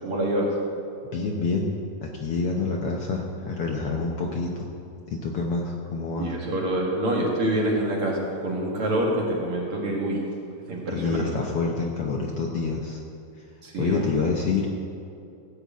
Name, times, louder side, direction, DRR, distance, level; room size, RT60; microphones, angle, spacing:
voice 1, 0.0-0.5 6.2-10.2 10.7-11.3 13.6-14.3, right 1 dB, 50° right, -2 dB, 2.5 m, -26 dB
voice 2, 1.1-4.7 5.1-6.3 10.9-13.0 13.4-13.5 13.8-14.7, left 4 dB, 65° left, 0 dB, 1.5 m, -27 dB
14.5 x 6.4 x 8.3 m, 2.7 s
omnidirectional pair, 3.4 m